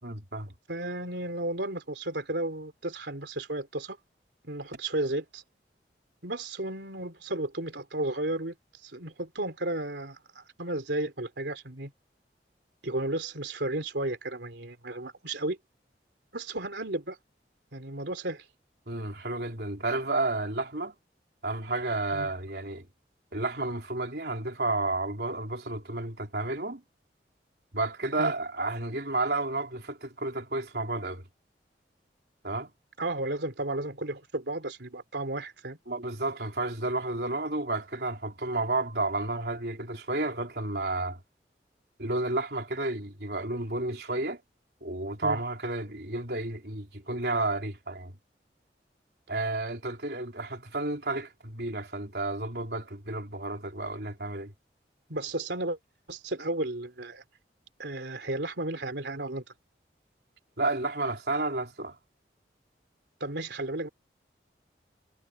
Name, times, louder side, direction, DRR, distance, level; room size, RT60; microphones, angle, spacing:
voice 1, 0.0-0.5 18.9-20.9 21.4-22.9 23.3-26.8 27.7-31.2 32.4-32.7 35.9-41.2 42.0-44.4 44.8-48.2 49.3-54.5 60.6-62.0, right 2 dB, 70° right, 3.7 m, -31 dB
voice 2, 0.7-4.0 4.4-5.4 6.2-8.6 8.8-11.9 12.8-15.6 16.3-17.2 17.7-18.5 22.1-22.3 28.2-28.3 33.0-35.8 45.2-45.4 55.1-55.8 56.1-57.2 57.8-59.4 63.2-63.9, right 2 dB, 85° right, 3.3 m, -33 dB
head